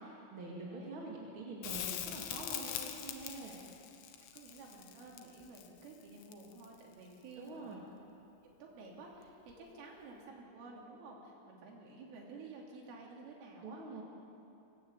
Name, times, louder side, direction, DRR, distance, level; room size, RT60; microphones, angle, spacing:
voice 1, 0.0-3.6 7.4-7.8 13.6-14.0, right 2 dB, 40° right, -3 dB, 2.1 m, -45 dB
Crackle, 1.6-6.8 9.5-9.6, left 11 dB, 80° left, 3.6 m, -43 dB
voice 2, 4.3-7.8 8.4-13.8, right 3 dB, 90° right, -2 dB, 5.5 m, -52 dB
24.0 x 17.0 x 8.8 m, 2.7 s
omnidirectional pair, 5.5 m